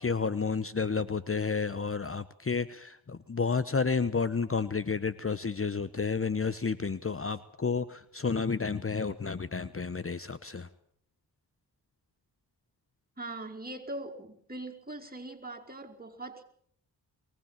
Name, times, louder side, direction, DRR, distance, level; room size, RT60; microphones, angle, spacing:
voice 1, 0.0-10.7, left 5 dB, 30° left, 15 dB, 1.1 m, -31 dB
voice 2, 13.2-16.4, right 2 dB, 20° right, 1 dB, 4.7 m, -41 dB
22.5 x 18.5 x 7.4 m, 0.64 s
supercardioid pair, 45°, 43 cm